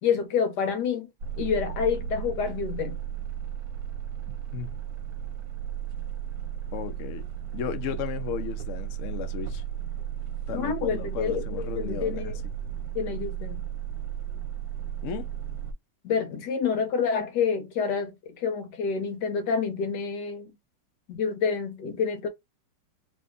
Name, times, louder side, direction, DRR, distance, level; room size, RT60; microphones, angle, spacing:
voice 1, 0.0-1.1 1.4-3.0 10.5-12.4 12.9-13.6 16.0-20.5 21.1-22.3, left 6 dB, 70° left, 1.4 m, -28 dB
sound 1, 1.2-15.7, right 9 dB, 70° right, 1.2 m, -34 dB
voice 2, 6.7-7.3 7.5-9.6 10.5-12.3 15.0-15.3, left 9 dB, 90° left, 0.6 m, -35 dB
3.2 x 2.6 x 3.5 m
omnidirectional pair, 2.1 m